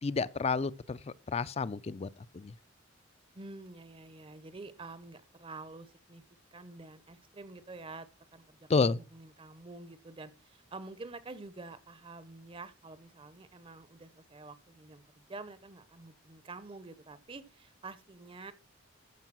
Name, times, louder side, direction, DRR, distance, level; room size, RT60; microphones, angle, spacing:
voice 1, 0.0-2.1 2.3-2.5 8.7-9.0, left 4 dB, 30° left, 0.4 m, -30 dB
voice 2, 3.3-6.2 6.5-18.5, right 3 dB, 25° right, 0.6 m, -48 dB
13.5 x 4.7 x 6.1 m
head